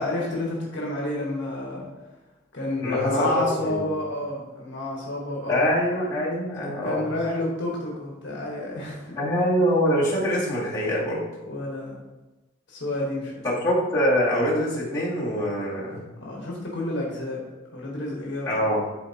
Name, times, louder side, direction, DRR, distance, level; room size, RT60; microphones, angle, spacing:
voice 1, 0.0-1.9 2.5-5.7 6.1-6.2 6.8-9.2 11.5-12.0 12.7-13.5 16.2-17.4 17.7-18.6, left 2 dB, 60° left, -3 dB, 1.4 m, -29 dB
voice 2, 2.8-3.9 5.5-7.1 9.2-11.2 13.4-16.0 18.5-18.8, equal, 20° left, -9 dB, 2.2 m, -24 dB
11.5 x 4.2 x 2.9 m, 1.1 s
head